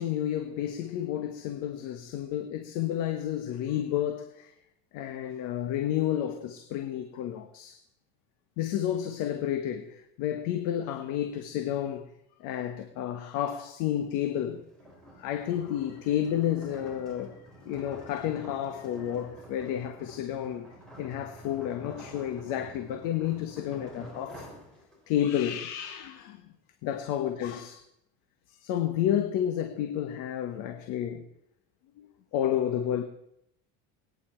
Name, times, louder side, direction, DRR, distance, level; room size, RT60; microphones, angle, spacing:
voice 1, 0.0-4.5 4.9-7.8 8.6-12.0 12.4-14.6 15.2-17.4 17.6-20.7 21.0-24.5 25.1-26.4 26.8-27.8 28.5-31.2 32.3-33.0, left 11 dB, 70° left, 1.4 m, -31 dB
sound 1, 14.3-25.3, equal, ahead, 6.2 m, -49 dB
23.0 x 9.8 x 4.6 m
supercardioid pair, 115°, 33 cm